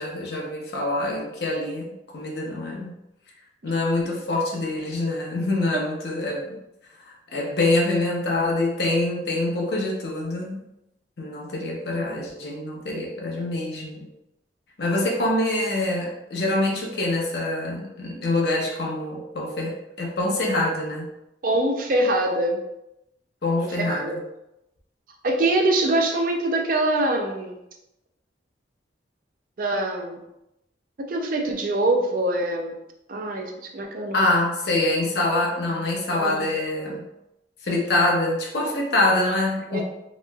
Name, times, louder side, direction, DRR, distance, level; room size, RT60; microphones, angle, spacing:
voice 1, 0.0-2.9 3.6-6.6 7.3-10.6 11.2-14.1 14.8-21.1 23.4-24.2 34.1-37.0 37.6-39.8, left 2 dB, 60° left, -1 dB, 0.6 m, -25 dB
voice 2, 21.4-22.6 23.6-24.1 25.2-27.6 29.6-30.2 31.0-32.8 33.1-34.3 36.1-36.5 39.7-39.8, right 1 dB, 50° right, 2 dB, 0.4 m, -24 dB
3.0 x 2.9 x 2.2 m, 0.87 s
head